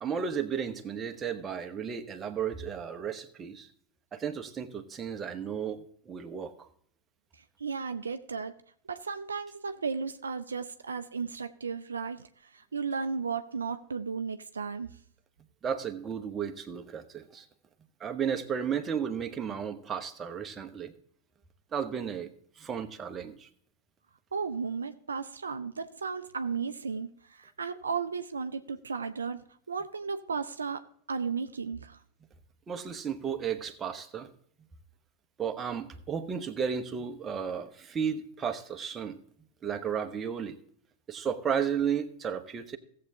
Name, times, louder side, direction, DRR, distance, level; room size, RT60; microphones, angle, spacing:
voice 1, 0.0-3.7 4.1-6.7 15.6-17.5 18.0-20.9 21.7-22.3 22.6-23.5 32.7-34.3 35.4-39.2 39.6-40.6 41.1-42.8, right 7 dB, 20° right, 6 dB, 0.9 m, -33 dB
voice 2, 7.3-8.5 8.9-14.9 24.3-32.0, right 5 dB, 75° right, 9 dB, 0.5 m, -35 dB
17.0 x 7.5 x 2.8 m, 0.63 s
figure-of-eight pair, 90°, 0 cm